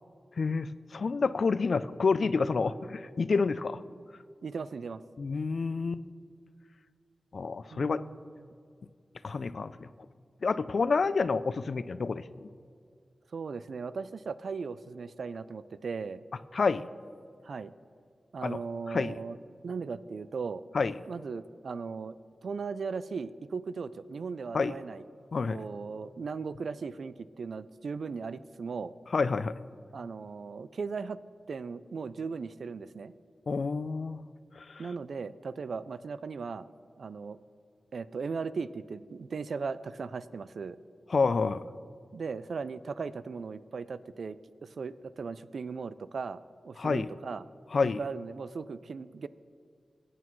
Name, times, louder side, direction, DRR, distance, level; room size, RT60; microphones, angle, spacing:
voice 1, 0.4-3.8 5.2-6.0 7.3-8.0 9.2-9.9 10.4-12.5 16.5-16.9 18.4-18.6 18.9-19.1 20.7-20.9 24.5-24.7 25.3-25.6 29.1-29.5 33.5-34.2 34.6-34.8 41.1-41.7 46.8-47.1 47.7-48.0, left 4 dB, 70° left, 15 dB, 0.3 m, -28 dB
voice 2, 4.4-5.0 7.7-8.5 13.3-16.2 17.4-17.7 18.3-19.4 19.6-20.6 21.1-22.2 22.4-25.0 25.5-28.9 29.9-31.2 31.5-33.1 34.8-36.7 37.0-37.4 37.9-40.8 42.1-46.4 46.6-47.5 48.0-49.3, right 5 dB, 80° right, 16 dB, 0.3 m, -37 dB
17.5 x 9.2 x 3.1 m, 2.3 s
cardioid pair, 45°, 0 cm